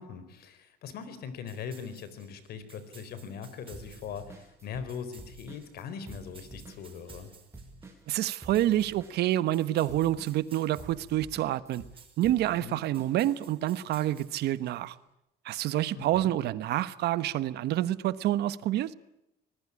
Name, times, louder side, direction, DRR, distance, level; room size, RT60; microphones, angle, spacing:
voice 1, 0.0-7.3 12.6-12.8 15.9-16.4, left 6 dB, 70° left, 4.2 m, -41 dB
sound 1, 1.5-15.0, right 6 dB, 30° right, 6.1 m, -57 dB
sound 2, 3.7-4.9 5.2-13.1, right 3 dB, 15° right, 7.3 m, -49 dB
voice 2, 8.1-11.8 12.2-15.0 15.4-18.9, right 13 dB, 75° right, 1.3 m, -28 dB
26.0 x 20.0 x 9.9 m
cardioid pair, 110°, 17 cm